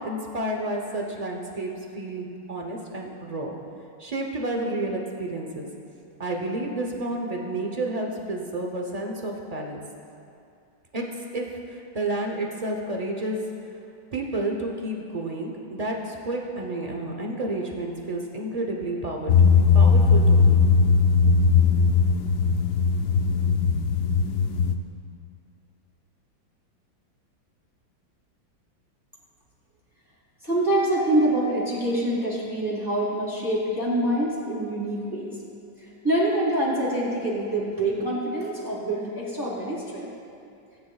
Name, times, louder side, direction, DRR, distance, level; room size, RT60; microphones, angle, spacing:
voice 1, 0.0-3.5 4.0-5.7 6.2-9.8 10.9-11.0 11.3-13.4 14.1-20.6 21.7-21.8, right 1 dB, 55° right, 0 dB, 0.4 m, -30 dB
sound 1, 19.3-24.7, left 5 dB, 70° left, 1.1 m, -19 dB
voice 2, 30.4-35.4 35.8-40.1, right 1 dB, 10° right, -7 dB, 2.8 m, -25 dB
18.0 x 9.6 x 2.4 m, 2.5 s
omnidirectional pair, 2.1 m